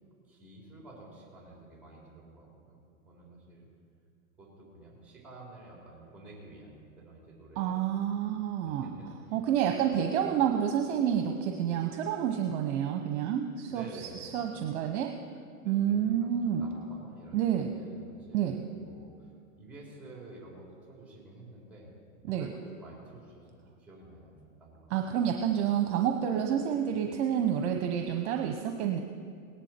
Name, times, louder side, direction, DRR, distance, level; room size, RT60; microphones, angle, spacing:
voice 1, 0.3-2.8 3.0-3.7 4.4-7.8 8.1-8.2 8.6-9.4 13.7-14.5 15.6-19.3 19.6-21.9 22.2-24.3 24.6-24.8, right 2 dB, 5° right, -3 dB, 3.5 m, -50 dB
voice 2, 7.6-8.9 9.3-15.1 15.6-16.6 17.3-17.7 18.3-18.6 22.2-22.5 24.9-29.0, right 9 dB, 55° right, 5 dB, 1.0 m, -29 dB
18.5 x 10.5 x 4.4 m, 2.2 s
supercardioid pair, 140°, 42 cm